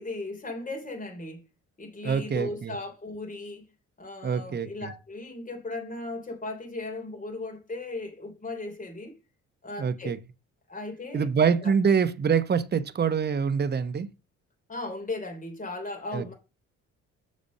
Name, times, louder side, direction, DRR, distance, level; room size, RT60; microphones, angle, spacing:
voice 1, 0.0-1.4 1.8-3.6 4.0-9.2 9.6-10.1 10.7-11.3 11.6-11.7 14.7-16.3, left 2 dB, 25° left, 3.5 m, -37 dB
voice 2, 2.0-2.7 4.2-4.9 9.8-10.2 11.1-14.1 16.1-16.2, right 6 dB, 35° right, 0.9 m, -25 dB
6.9 x 4.2 x 6.4 m
cardioid pair, 90°, 30 cm